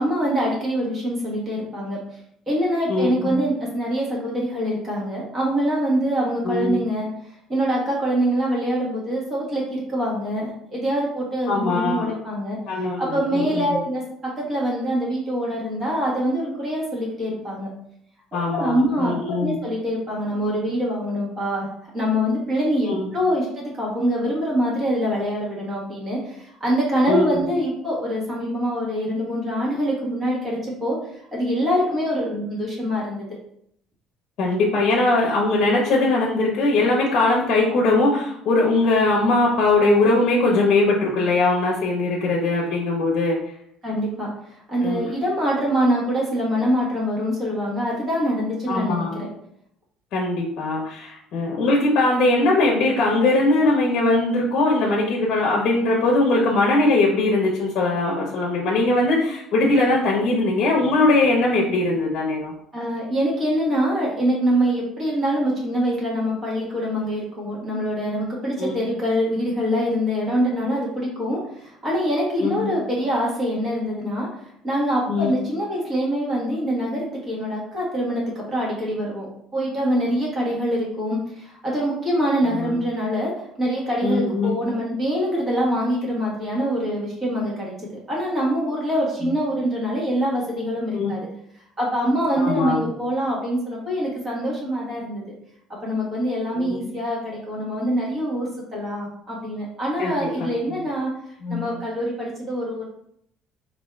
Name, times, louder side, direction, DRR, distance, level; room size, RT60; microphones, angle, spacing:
voice 1, 0.0-2.0 2.5-7.1 7.5-12.6 13.0-17.7 18.5-21.7 21.9-31.0 31.3-33.3 43.8-49.3 62.7-87.7 88.1-91.3 91.8-95.2 95.8-101.1 101.5-102.9, equal, 25° right, -4 dB, 1.2 m, -24 dB
voice 2, 2.9-3.4 6.4-6.8 11.5-12.1 12.7-13.6 18.3-19.6 22.9-23.1 27.1-27.2 32.3-32.5 34.4-43.4 44.8-45.0 48.7-49.3 50.1-62.5 68.6-68.7 72.4-72.7 75.1-75.3 82.5-82.7 84.0-84.6 90.9-91.2 92.4-92.9 96.5-97.0 100.0-100.1 101.4-101.7, left 2 dB, 45° left, -2 dB, 0.9 m, -21 dB
4.4 x 2.7 x 3.3 m, 0.71 s
cardioid pair, 165°, 0 cm